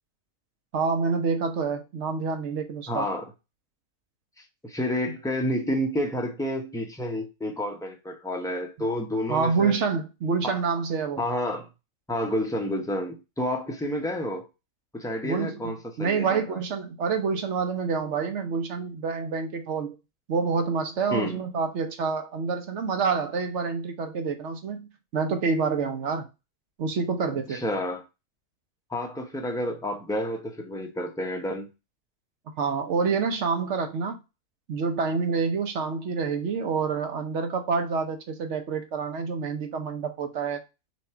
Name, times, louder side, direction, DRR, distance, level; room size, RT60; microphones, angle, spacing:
voice 1, 0.7-3.1 9.3-11.2 15.2-19.9 20.3-26.3 26.8-27.6 32.6-34.2 34.7-40.6, right 5 dB, 60° right, 0.9 m, -27 dB
voice 2, 2.9-3.3 4.6-9.7 10.4-10.6 11.2-11.7 12.1-14.5 14.9-16.6 21.1-21.4 27.5-28.0 28.9-31.7, left 1 dB, 5° left, 0.4 m, -30 dB
3.5 x 3.0 x 4.3 m
omnidirectional pair, 1.5 m